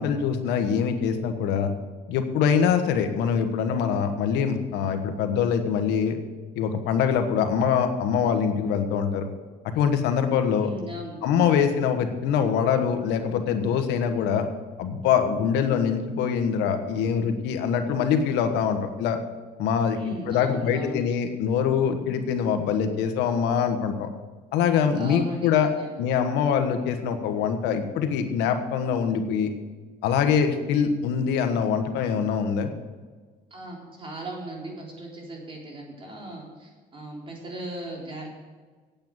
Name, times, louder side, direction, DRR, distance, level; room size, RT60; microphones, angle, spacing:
voice 1, 0.0-1.7 2.1-6.2 6.5-9.2 9.7-10.7 11.2-14.5 14.8-19.2 19.6-24.1 24.5-25.7 26.0-29.5 30.0-32.7, left 7 dB, 90° left, 7 dB, 1.3 m, -24 dB
voice 2, 10.5-11.2 19.9-21.1 24.9-25.5 25.8-26.0 33.5-38.3, right 1 dB, 30° right, -2 dB, 3.8 m, -37 dB
8.9 x 8.8 x 7.9 m, 1.4 s
cardioid pair, 110°, 17 cm